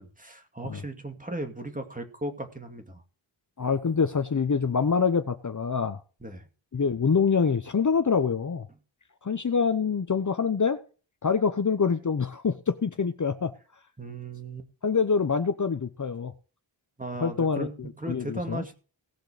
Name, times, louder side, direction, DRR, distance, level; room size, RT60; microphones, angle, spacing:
voice 1, 0.0-3.0 6.2-6.5 14.0-14.7 17.0-18.7, right 1 dB, 15° right, 5 dB, 2.3 m, -37 dB
voice 2, 3.6-6.0 6.7-8.7 9.2-10.8 11.2-13.5 14.8-16.3 17.2-18.6, left 5 dB, 40° left, 10 dB, 0.8 m, -25 dB
17.5 x 6.6 x 5.0 m, 0.37 s
wide cardioid pair, 105°, 47 cm